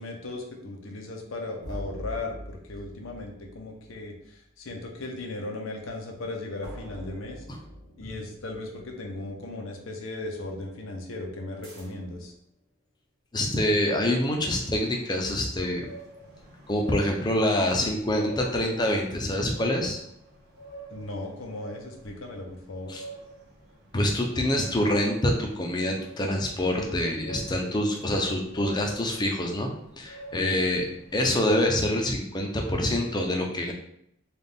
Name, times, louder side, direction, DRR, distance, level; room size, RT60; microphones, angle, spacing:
voice 1, 0.0-7.4 8.0-12.3 20.9-22.9 30.3-30.6, left 2 dB, 85° left, 2 dB, 0.8 m, -37 dB
sound 1, 1.6-4.4 6.6-9.3 11.6-12.3, equal, 90° right, 1.4 m, -43 dB
voice 2, 13.3-15.9 16.7-20.0 22.9-23.0 23.9-29.7 30.0-30.8 31.1-33.7, left 1 dB, 20° left, 1 dB, 0.6 m, -26 dB
sound 2, 14.3-31.7, right 2 dB, 50° right, 1.4 m, -47 dB
4.1 x 2.4 x 3.4 m, 0.72 s
head